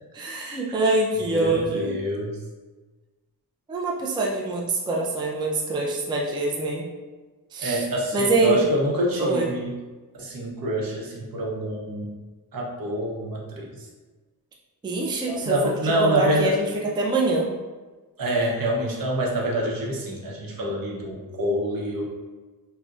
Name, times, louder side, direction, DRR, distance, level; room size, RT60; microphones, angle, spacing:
voice 1, 0.1-1.9 3.7-6.8 7.5-7.8 8.1-8.6 9.2-9.5 14.8-15.5 15.8-17.5, right 2 dB, 15° right, -2 dB, 0.3 m, -25 dB
voice 2, 1.3-2.4 7.6-9.8 10.1-12.1 12.5-13.9 15.3-16.6 18.2-22.1, right 1 dB, 65° right, -3 dB, 0.8 m, -26 dB
3.8 x 2.1 x 2.4 m, 1.3 s
wide cardioid pair, 110°, 37 cm